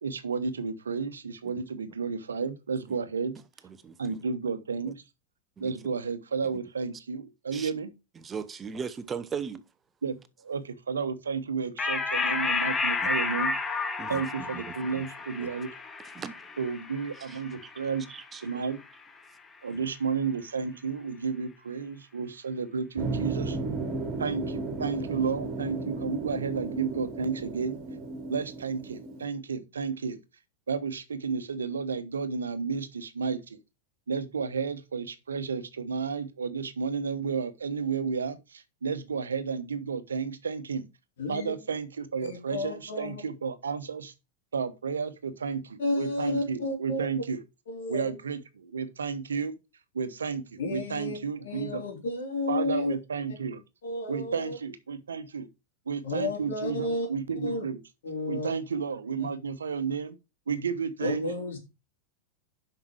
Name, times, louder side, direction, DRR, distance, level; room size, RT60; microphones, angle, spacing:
voice 1, 0.0-3.4 4.0-5.0 5.6-7.9 10.0-13.6 14.1-15.7 16.6-18.1 18.4-18.8 19.6-23.6 24.2-27.8 28.3-30.2 30.7-33.6 34.1-40.9 41.3-44.1 44.5-47.4 47.9-49.5 49.9-51.8 52.5-53.6 54.1-55.5 55.9-57.8 58.3-60.2 60.5-61.3, right 5 dB, 80° right, 1.0 m, -32 dB
voice 2, 3.8-4.2 5.6-5.7 7.5-7.7 8.2-9.6 14.0-14.2 14.5-14.6 14.9-15.0 15.4-15.5 16.1-16.5 17.3-17.7 18.1-18.6 19.7-19.8, right 6 dB, 25° right, 0.8 m, -38 dB
sound 1, 11.8-18.7, left 4 dB, 20° left, 1.3 m, -31 dB
sound 2, 23.0-29.3, right 3 dB, 40° right, 1.9 m, -34 dB
voice 3, 41.2-41.5 42.2-43.2 45.8-47.1 47.7-48.1 50.6-51.2 51.4-52.9 53.8-54.6 56.0-57.1 57.4-57.6 58.0-58.5 61.0-61.6, left 2 dB, 70° left, 3.7 m, -32 dB
7.3 x 5.9 x 4.9 m
figure-of-eight pair, 90°, 0 cm